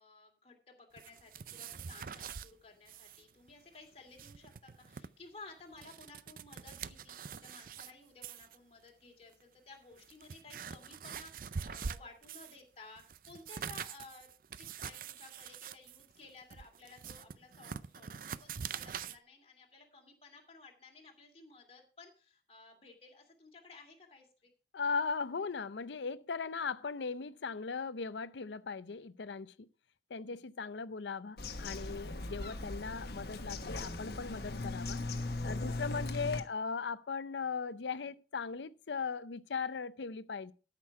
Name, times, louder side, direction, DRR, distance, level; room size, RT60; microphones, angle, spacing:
voice 1, 0.0-24.5, left 3 dB, 35° left, 2.5 m, -56 dB
sound 1, 1.0-2.5 2.9-3.2 3.5-3.6 4.0-5.1 5.6-7.9 8.2-8.6 9.3-9.4 9.9-12.6 13.0-19.2, right 6 dB, 50° right, 0.5 m, -44 dB
voice 2, 24.7-29.7 30.1-35.0 35.4-40.5, left 5 dB, 90° left, 0.6 m, -38 dB
Bird vocalization bird call bird song, 31.4-36.4, left 2 dB, 60° left, 1.2 m, -39 dB
13.5 x 6.1 x 4.7 m
head